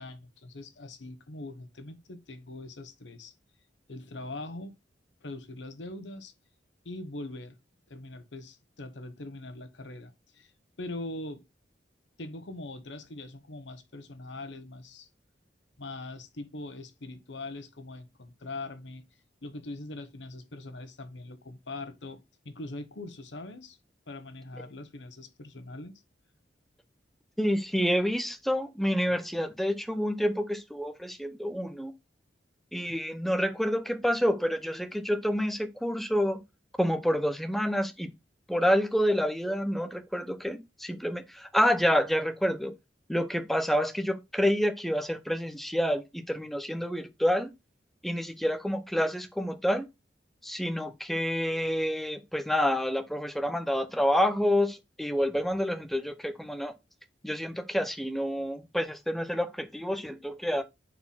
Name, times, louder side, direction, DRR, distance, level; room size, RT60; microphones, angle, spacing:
voice 1, 0.0-3.3 3.9-4.8 5.2-6.3 6.8-7.6 7.9-10.5 10.8-11.4 12.2-15.1 15.8-19.0 19.4-23.8 24.1-25.9 58.4-58.5, left 2 dB, 85° left, 1.0 m, -42 dB
voice 2, 27.4-31.9 32.7-36.4 36.8-38.1 38.5-42.7 43.1-47.5 48.0-49.9 50.4-56.7 57.2-60.6, equal, ahead, 0.6 m, -28 dB
4.5 x 4.1 x 5.6 m
head